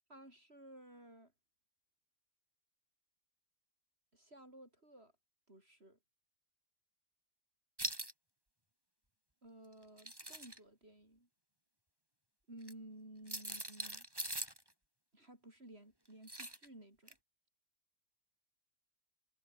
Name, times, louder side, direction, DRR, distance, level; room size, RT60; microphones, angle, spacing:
voice 1, 0.1-1.3 4.1-5.1 5.5-6.0 9.4-11.3 12.5-14.1 15.1-17.2, right 1 dB, 45° right, 7.1 m, -55 dB
sound 1, 7.8-8.1 9.8-10.6 12.6-12.7 13.3-14.6 16.3-16.7 17.1-17.2, right 1 dB, 15° right, 5.1 m, -42 dB
omnidirectional pair, 1.5 m